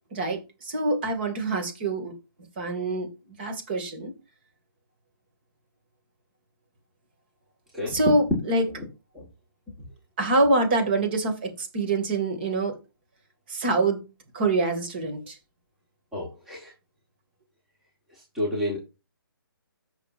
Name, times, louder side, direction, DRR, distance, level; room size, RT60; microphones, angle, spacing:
voice 1, 0.1-2.1 2.6-3.1 3.4-4.1 7.9-8.6 10.2-12.8 13.5-14.0 14.3-15.4, right 2 dB, 25° right, 2.3 m, -25 dB
voice 2, 7.7-8.1 8.7-8.8 9.1-9.2 16.1-16.7 18.1-18.8, left 1 dB, 5° right, 1.5 m, -30 dB
14.5 x 6.1 x 2.6 m
hypercardioid pair, 170°, 12 cm